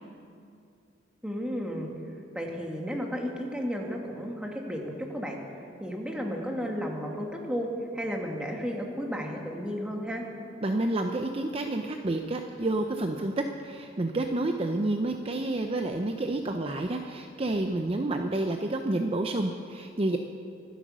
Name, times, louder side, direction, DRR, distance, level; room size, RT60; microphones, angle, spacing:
voice 1, 1.2-1.9 2.3-5.4 5.8-7.7 7.9-10.2, equal, 5° right, 0 dB, 1.7 m, -33 dB
voice 2, 10.6-13.3 13.6-20.2, right 2 dB, 30° right, 4 dB, 0.6 m, -29 dB
24.5 x 8.3 x 6.2 m, 2.5 s
head